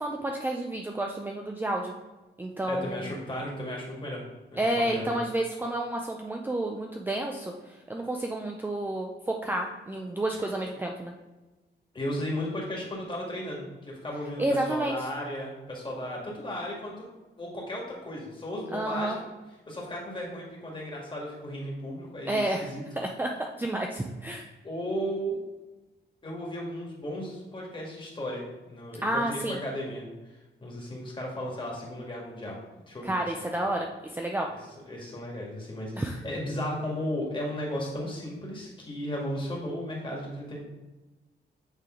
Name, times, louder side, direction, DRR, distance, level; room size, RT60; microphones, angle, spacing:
voice 1, 0.0-1.9 2.4-3.1 4.6-11.1 14.4-15.1 18.7-19.2 22.3-22.7 23.0-23.3 23.6-24.5 29.0-29.6 33.0-34.5 36.0-36.2, right 1 dB, 10° right, 1 dB, 0.4 m, -30 dB
voice 2, 2.7-4.2 4.5-5.1 10.3-10.4 11.9-17.1 17.4-19.2 19.7-22.8 24.6-25.4 26.2-32.6 32.9-33.1 33.4-33.5 34.9-40.6, equal, 25° left, -3 dB, 1.8 m, -35 dB
8.2 x 3.3 x 3.7 m, 1.1 s
wide cardioid pair, 120°, 19 cm